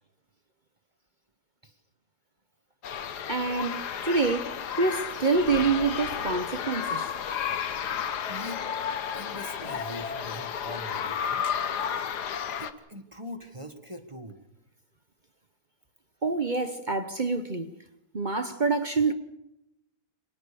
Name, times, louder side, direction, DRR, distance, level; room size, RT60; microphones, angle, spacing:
sound 1, 2.8-12.7, left 8 dB, 80° left, 1.7 m, -32 dB
voice 1, 3.3-7.0 16.2-17.7 18.1-19.1, right 4 dB, 35° right, 0.9 m, -26 dB
voice 2, 8.3-8.6 9.1-11.5 12.6-14.4, equal, 20° right, 1.5 m, -42 dB
25.5 x 19.0 x 6.9 m
omnidirectional pair, 1.7 m